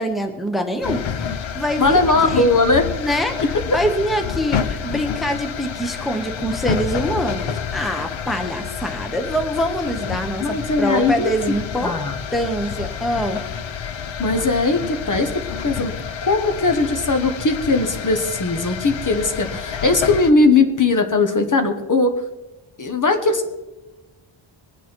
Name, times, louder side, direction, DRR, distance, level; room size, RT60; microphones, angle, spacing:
voice 1, 0.0-2.5 3.0-3.3 3.7-11.9 12.3-13.4, equal, ahead, 5 dB, 1.0 m, -24 dB
train Moscow to Voronezh, 0.8-20.3, left 7 dB, 65° left, 0.8 m, -29 dB
voice 2, 1.8-2.8 10.4-11.3 11.8-12.2 14.2-15.9 16.2-22.2 22.8-23.5, left 3 dB, 40° left, 6 dB, 1.2 m, -19 dB
21.0 x 9.1 x 4.5 m, 1.1 s
wide cardioid pair, 150°, 50 cm